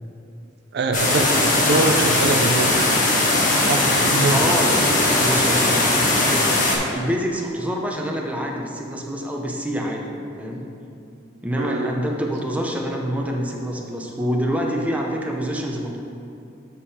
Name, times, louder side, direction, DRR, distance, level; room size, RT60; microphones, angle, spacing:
voice 1, 0.7-2.8 3.7-4.4 11.6-11.9, right 3 dB, 60° right, 5 dB, 0.4 m, -23 dB
sound 1, 0.9-6.8, left 2 dB, 45° left, 1.2 m, -19 dB
voice 2, 4.3-6.5 6.9-10.6 11.4-16.0, equal, 10° right, 0 dB, 0.7 m, -26 dB
7.4 x 5.5 x 4.2 m, 2.6 s
head